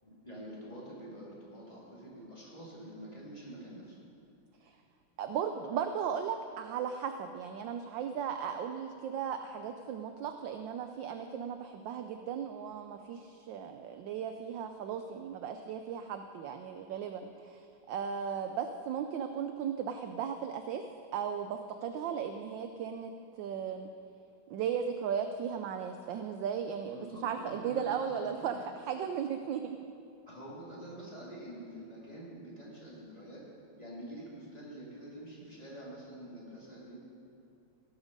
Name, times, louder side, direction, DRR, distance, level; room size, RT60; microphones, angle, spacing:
voice 1, 0.0-4.0 26.9-28.6 30.3-33.4 33.8-37.0, right 1 dB, 15° left, -6 dB, 2.7 m, -46 dB
voice 2, 5.2-20.8 21.1-23.1 23.4-23.9 24.5-29.8, right 7 dB, 75° right, 7 dB, 1.1 m, -36 dB
18.0 x 7.2 x 5.3 m, 2.5 s
omnidirectional pair, 2.4 m